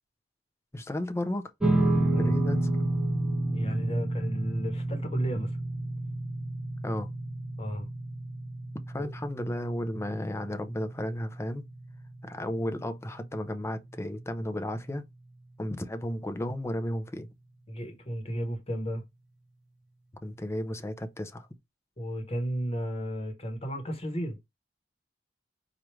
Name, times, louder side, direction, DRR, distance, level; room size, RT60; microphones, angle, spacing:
voice 1, 0.7-1.5 2.2-2.7 6.8-7.1 8.9-11.6 12.2-15.1 15.6-17.3 20.2-21.5, left 1 dB, 15° left, 0.5 m, -33 dB
sound 1, 1.6-14.1, right 1 dB, 5° right, 1.0 m, -31 dB
voice 2, 3.5-5.5 7.6-7.9 9.0-9.1 17.7-19.0 22.0-24.4, equal, 30° left, 1.1 m, -33 dB
4.5 x 2.5 x 3.1 m
head